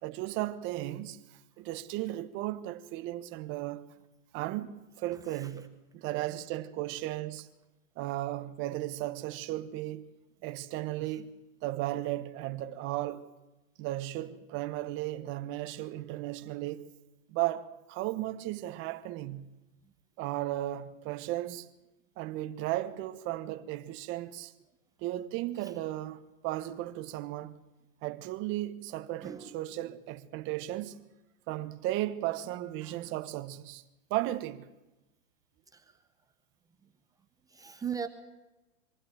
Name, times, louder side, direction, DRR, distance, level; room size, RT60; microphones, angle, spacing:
voice 1, 0.0-1.2 1.6-3.9 4.3-7.5 8.0-10.1 10.4-13.3 13.8-16.9 17.3-19.5 20.2-21.7 22.2-24.5 25.0-27.6 28.0-31.0 31.5-33.8 34.1-34.7, right 15 dB, 30° right, 1.2 m, -35 dB
voice 2, 5.1-5.7 11.0-11.2 19.8-19.9 25.6-25.8 29.2-29.6 32.3-32.4 32.8-33.1 35.7-36.0 36.8-36.9 37.5-38.1, right 7 dB, 10° right, 0.8 m, -41 dB
24.0 x 15.5 x 8.9 m
hypercardioid pair, 140°, 40 cm